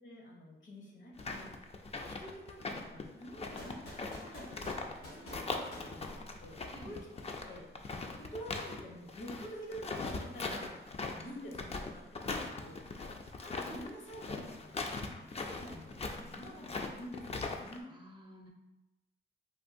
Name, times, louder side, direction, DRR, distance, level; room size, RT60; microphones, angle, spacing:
voice 1, 0.0-1.8 2.1-7.1 7.4-13.0 13.4-17.9, equal, 65° left, -1 dB, 0.9 m, -49 dB
sound 1, 1.2-5.0 5.3-8.8 9.1-17.8, left 3 dB, 30° left, 0.4 m, -40 dB
sound 2, 3.6-6.7, equal, 85° left, 1.4 m, -50 dB
voice 2, 6.7-7.0 17.9-18.5, equal, 25° right, 1 dB, 0.6 m, -52 dB
3.5 x 2.3 x 2.5 m, 0.99 s
cardioid pair, 60°, 21 cm